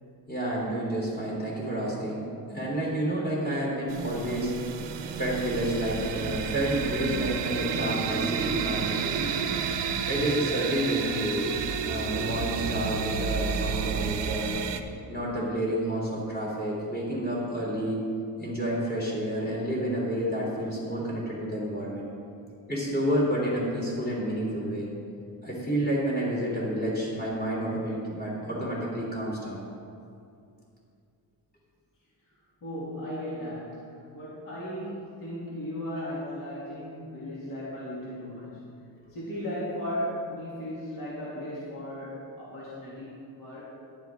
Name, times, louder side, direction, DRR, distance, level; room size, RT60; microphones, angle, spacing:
voice 1, 0.3-4.5 5.2-9.4 10.1-11.5 11.8-14.5 15.1-18.0 18.4-22.1 22.7-24.9 25.4-29.6, right 1 dB, 20° left, -6 dB, 3.1 m, -29 dB
sound 1, 3.9-14.8, right 6 dB, 75° right, 0.9 m, -31 dB
voice 2, 32.6-38.6 39.1-43.7, equal, 50° left, -8 dB, 2.6 m, -36 dB
14.0 x 10.5 x 3.6 m, 2.5 s
wide cardioid pair, 145°, 43 cm